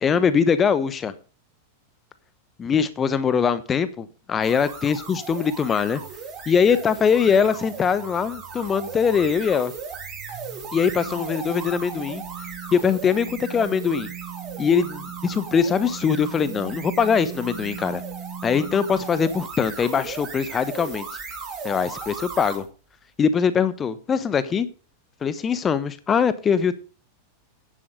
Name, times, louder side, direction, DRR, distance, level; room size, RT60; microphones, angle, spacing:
voice 1, 0.0-1.1 2.6-6.0 6.5-9.7 10.7-12.2 12.7-14.1 14.6-18.0 18.4-21.1 21.6-22.7 23.2-24.7 25.2-26.7, left 6 dB, 20° left, 14 dB, 1.0 m, -22 dB
sound 1, 4.4-22.7, right 5 dB, 35° right, 4.4 m, -37 dB
sound 2, 5.9-9.4 9.9-19.4, right 9 dB, 60° right, 4.9 m, -40 dB
10.0 x 7.6 x 6.6 m, 0.36 s
figure-of-eight pair, 90°, 0 cm